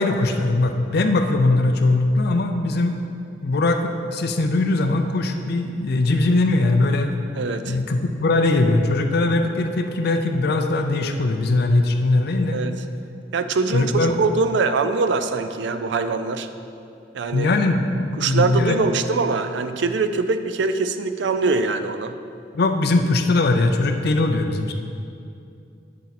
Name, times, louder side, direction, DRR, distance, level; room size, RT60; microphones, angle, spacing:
voice 1, 0.0-3.0 3.4-7.1 7.6-12.6 13.7-14.2 17.3-18.8 22.5-24.7, left 2 dB, 60° left, 5 dB, 0.5 m, -20 dB
voice 2, 7.3-7.8 12.5-12.8 13.3-16.5 17.1-17.5 18.2-22.2, right 4 dB, 70° right, 10 dB, 0.4 m, -23 dB
8.2 x 6.6 x 4.1 m, 2.6 s
head